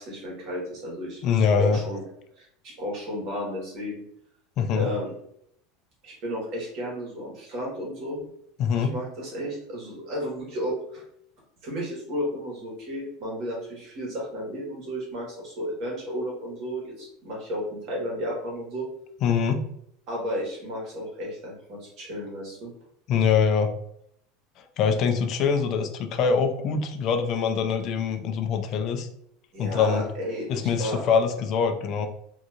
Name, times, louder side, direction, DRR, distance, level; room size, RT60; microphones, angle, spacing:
voice 1, 0.0-1.2 1.6-2.0 2.4-4.0 4.7-5.1 6.0-8.2 8.7-11.0 11.6-18.9 20.1-22.7 29.5-31.0, equal, 45° right, -3 dB, 1.3 m, -33 dB
voice 2, 1.2-1.8 4.6-4.9 8.6-8.9 19.2-19.6 23.1-23.7 24.6-29.1 29.6-30.0 30.5-32.1, left 6 dB, 40° left, 6 dB, 0.4 m, -24 dB
2.9 x 2.6 x 2.4 m, 0.70 s
supercardioid pair, 160°, 0 cm